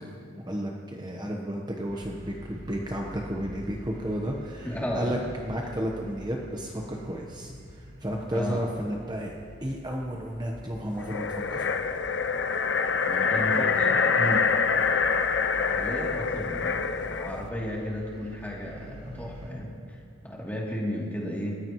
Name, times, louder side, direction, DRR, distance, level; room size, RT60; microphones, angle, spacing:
voice 1, 0.5-9.3 9.6-11.7 14.2-14.4, equal, 20° right, 0 dB, 1.1 m, -32 dB
sound 1, 1.9-19.5, equal, 60° right, 4.7 m, -47 dB
voice 2, 4.6-5.3 8.3-8.6 13.1-14.1 15.7-20.0 20.2-21.6, equal, 10° left, -4 dB, 2.9 m, -34 dB
sound 2, 11.0-17.4, left 5 dB, 65° left, 0.6 m, -25 dB
28.5 x 14.5 x 3.1 m, 2.3 s
head